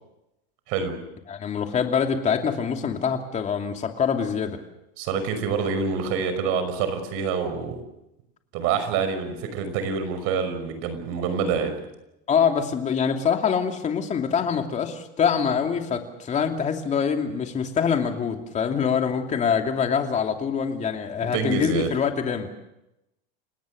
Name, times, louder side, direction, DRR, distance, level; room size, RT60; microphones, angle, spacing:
voice 1, 1.3-4.6 12.3-22.5, left 7 dB, 25° left, 4 dB, 2.8 m, -24 dB
voice 2, 5.0-7.8 8.5-11.8 21.3-21.9, right 5 dB, 55° right, 9 dB, 5.6 m, -26 dB
29.5 x 18.0 x 6.6 m, 0.89 s
supercardioid pair, 145°, 29 cm